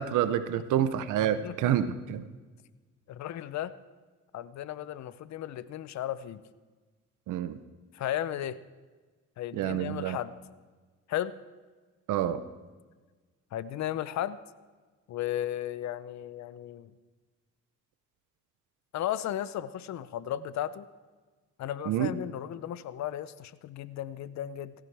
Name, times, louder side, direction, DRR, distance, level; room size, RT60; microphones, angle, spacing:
voice 1, 0.0-2.2 7.3-7.6 9.5-10.2 12.1-12.4 21.9-22.1, right 10 dB, 85° right, 12 dB, 0.8 m, -28 dB
voice 2, 1.4-1.7 3.1-3.7 4.3-6.4 7.9-8.6 9.4-10.4 11.1-11.3 13.5-14.4 15.1-16.9 18.9-20.9 21.6-24.7, left 11 dB, 65° left, 15 dB, 0.7 m, -35 dB
17.5 x 15.5 x 3.4 m, 1.3 s
cardioid pair, 90°, 30 cm